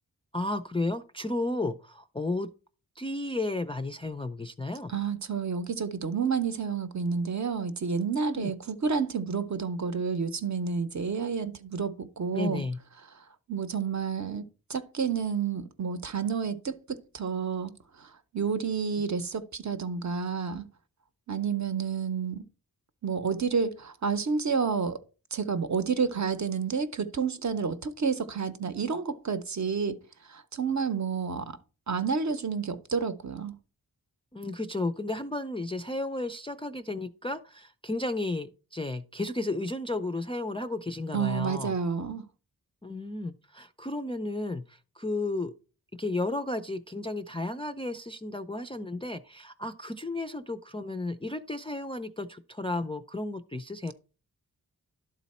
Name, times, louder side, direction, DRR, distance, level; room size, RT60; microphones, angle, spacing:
voice 1, 0.3-2.5 3.0-4.9 8.3-8.5 12.3-12.8 34.3-41.7 42.8-45.5 46.0-53.9, left 2 dB, 15° left, 0.3 m, -33 dB
voice 2, 4.9-12.6 13.5-14.4 14.7-17.7 18.0-18.1 18.3-20.6 21.3-22.4 23.0-25.0 25.3-30.0 30.3-31.6 31.9-33.5 41.1-42.2, right 5 dB, 50° right, 0.7 m, -30 dB
11.5 x 4.0 x 4.1 m
wide cardioid pair, 130°, 38 cm